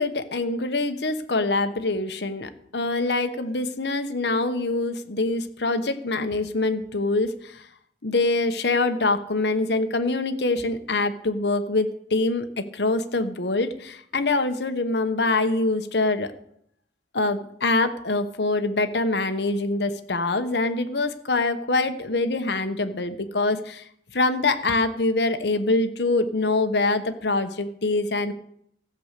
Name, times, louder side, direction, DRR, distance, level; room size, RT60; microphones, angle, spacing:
voice 1, 0.0-7.7 8.0-16.3 17.1-23.8 24.1-28.3, left 2 dB, 65° left, 8 dB, 1.1 m, -24 dB
14.5 x 7.8 x 6.7 m, 0.72 s
head